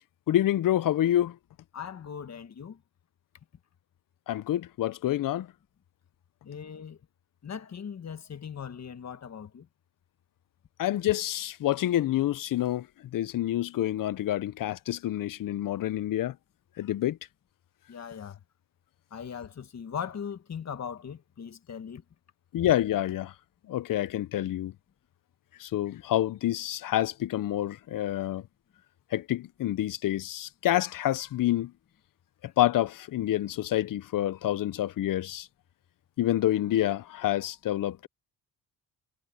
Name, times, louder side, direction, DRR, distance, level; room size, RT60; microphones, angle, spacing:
voice 1, 0.3-1.4 4.3-5.5 10.8-12.9 13.1-16.3 16.8-17.2 22.5-23.3 23.7-24.7 25.6-28.4 29.1-31.7 32.6-35.5 36.2-38.1, left 13 dB, 60° left, 0.7 m, -27 dB
voice 2, 1.7-2.8 6.4-7.0 7.4-9.7 17.9-18.4 19.1-22.0, left 7 dB, 45° left, 1.7 m, -39 dB
cardioid pair, 95°, 37 cm